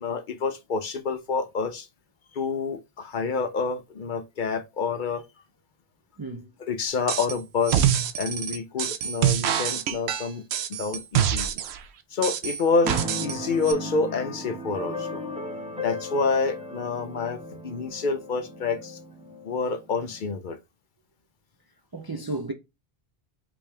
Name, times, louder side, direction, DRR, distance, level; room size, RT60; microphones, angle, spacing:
voice 1, 0.0-1.9 2.3-5.2 6.6-7.9 8.1-10.4 10.7-11.5 12.1-15.6 15.8-19.0 19.4-20.6, left 4 dB, 55° left, 0.7 m, -28 dB
voice 2, 6.2-6.5 21.9-22.5, right 2 dB, 40° right, 0.3 m, -33 dB
sound 1, 7.1-7.4 7.6-11.8 12.2-13.4 13.6-13.7, right 10 dB, 80° right, 0.8 m, -25 dB
Keyboard (musical), 12.8-20.3, left 1 dB, 5° right, 0.8 m, -36 dB
5.0 x 3.1 x 3.3 m
omnidirectional pair, 1.1 m